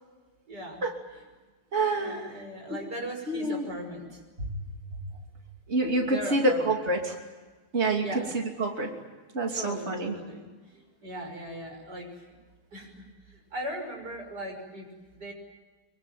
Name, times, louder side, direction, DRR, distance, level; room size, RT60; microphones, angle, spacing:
voice 1, 0.5-0.8 1.9-4.2 6.1-6.6 8.0-8.3 9.5-12.1 12.7-14.9 15.1-15.3, equal, 65° right, 3 dB, 6.8 m, -39 dB
voice 2, 1.7-2.4 2.7-2.8 3.3-3.7 4.4-4.6 4.9-5.1 5.7-7.2 7.7-8.9 9.3-10.2, right 2 dB, 35° right, 2 dB, 3.1 m, -27 dB
24.5 x 24.5 x 9.2 m, 1.3 s
omnidirectional pair, 1.9 m